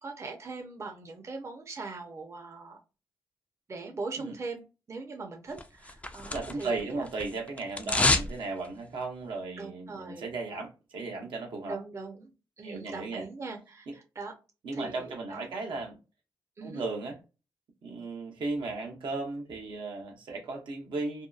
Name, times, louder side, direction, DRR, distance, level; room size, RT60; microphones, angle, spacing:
voice 1, 0.0-2.8 3.7-4.6 4.9-7.1 7.8-8.1 9.6-10.3 11.7-14.3 14.7-15.5 16.6-16.8, right 3 dB, 35° right, 0.6 m, -41 dB
sound 1, 5.6-6.8 7.1-8.3 8.6-8.7, left 2 dB, 15° left, 0.3 m, -27 dB
voice 2, 6.3-11.8 12.6-13.2 13.9-14.0 14.6-16.0 16.6-17.2 17.8-21.3, right 3 dB, 75° right, 0.8 m, -36 dB
2.7 x 2.2 x 2.3 m
cardioid pair, 90°, 8 cm